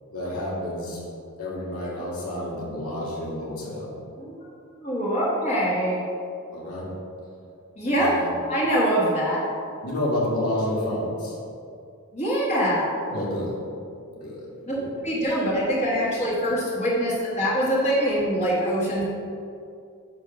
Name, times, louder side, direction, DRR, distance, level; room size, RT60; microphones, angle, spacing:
voice 1, 0.1-1.0 1.4-3.9 6.5-6.9 7.8-8.3 9.8-11.4 13.0-13.6 14.1-14.5 14.7-15.0, left 1 dB, 85° left, -5 dB, 2.0 m, -29 dB
voice 2, 4.8-6.0 7.8-8.1 8.5-9.4 12.1-12.9 14.7-14.8 15.0-19.0, equal, 30° left, -6 dB, 1.7 m, -24 dB
9.8 x 3.4 x 6.1 m, 2.4 s
head